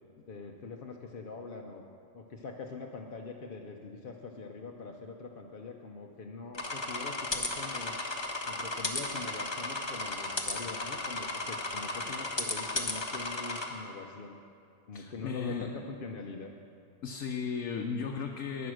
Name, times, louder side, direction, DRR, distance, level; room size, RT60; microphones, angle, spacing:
voice 1, 0.3-1.8 2.1-8.0 8.5-14.4 14.9-16.5, left 4 dB, 50° left, 1 dB, 0.7 m, -43 dB
sound 1, 6.5-13.7, left 2 dB, 25° left, 0.9 m, -35 dB
voice 2, 14.9-15.7 17.0-18.7, left 6 dB, 70° left, 2 dB, 1.1 m, -35 dB
11.0 x 9.3 x 6.3 m, 2.4 s
omnidirectional pair, 1.4 m